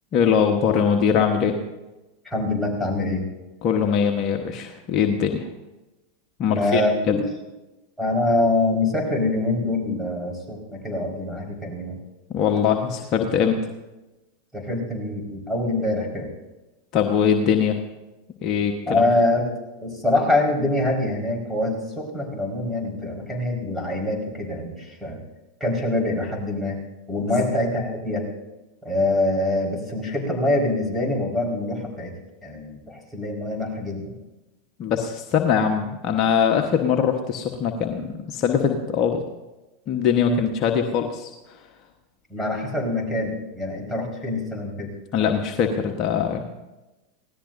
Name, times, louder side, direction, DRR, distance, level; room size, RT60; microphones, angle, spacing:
voice 1, 0.1-1.6 3.6-5.5 6.4-6.8 7.1-7.2 12.3-13.7 16.9-17.8 18.4-19.0 34.8-39.2 39.9-41.6 45.1-46.4, left 7 dB, 45° left, 3 dB, 1.2 m, -22 dB
voice 2, 2.2-3.2 6.6-7.2 8.0-12.0 14.5-16.3 18.9-19.4 19.8-25.2 25.6-26.8 27.1-28.3 28.8-32.1 32.4-34.2 40.2-40.4 42.3-44.9, left 2 dB, ahead, -1 dB, 4.8 m, -24 dB
25.0 x 17.5 x 2.7 m, 1.1 s
hypercardioid pair, 90°, 0 cm